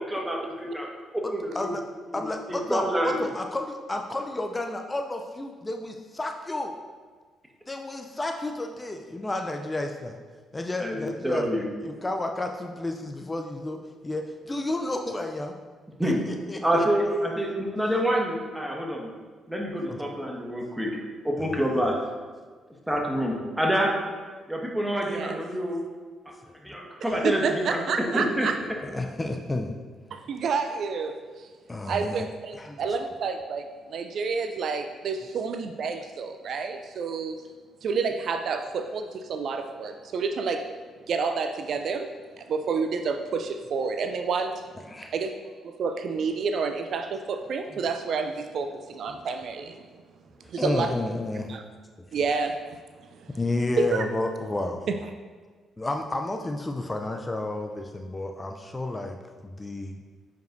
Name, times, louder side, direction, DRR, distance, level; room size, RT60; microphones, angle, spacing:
voice 1, 0.0-1.8 2.1-3.2 10.8-11.6 16.0-16.2 16.6-19.1 19.5-21.0 21.2-22.0 22.9-23.9 24.5-25.8 26.3-26.4 26.6-28.5, equal, 10° right, 0 dB, 1.5 m, -27 dB
voice 2, 1.2-1.8 2.1-6.7 7.7-10.2 10.5-11.5 11.8-15.5 16.0-17.6 19.9-20.1 21.4-21.9 26.5-26.7 28.8-29.8 31.7-32.3 32.6-32.8 44.8-45.1 47.7-47.8 49.1-49.2 50.6-51.5 52.0-52.2 53.4-54.9 55.8-59.2 59.4-60.0, left 2 dB, 25° left, 4 dB, 0.5 m, -32 dB
voice 3, 25.0-25.4 27.2-28.6 30.1-31.5 31.9-37.4 37.8-40.7 41.1-44.6 45.1-49.8 50.5-50.9 51.5-51.6 52.1-52.8 53.2-53.3 53.8-54.1, right 5 dB, 60° right, 7 dB, 0.4 m, -29 dB
9.0 x 5.2 x 2.6 m, 1.5 s
hypercardioid pair, 45°, 0 cm